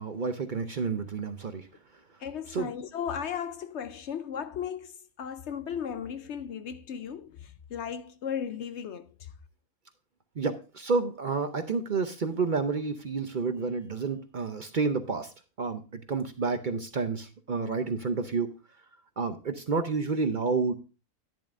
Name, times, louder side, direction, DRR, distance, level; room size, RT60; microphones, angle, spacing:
voice 1, 0.0-1.7 2.5-2.7 10.4-18.5 19.2-20.7, right 4 dB, 45° right, 0.7 m, -30 dB
voice 2, 2.2-9.3, left 8 dB, 65° left, 0.8 m, -36 dB
10.5 x 10.5 x 2.5 m
omnidirectional pair, 1.4 m